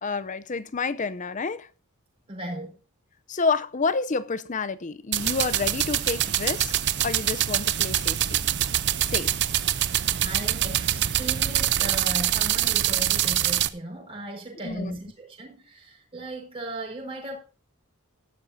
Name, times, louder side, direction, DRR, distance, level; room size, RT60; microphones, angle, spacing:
voice 1, 0.0-1.7 3.3-6.7 7.0-8.4 9.1-9.4 14.6-15.0, left 4 dB, 35° left, 0.6 m, -29 dB
voice 2, 2.3-2.8 10.2-17.4, right 1 dB, 25° right, 5.2 m, -37 dB
sound 1, 5.1-13.7, right 11 dB, 50° right, 0.6 m, -24 dB
15.5 x 12.0 x 2.7 m
head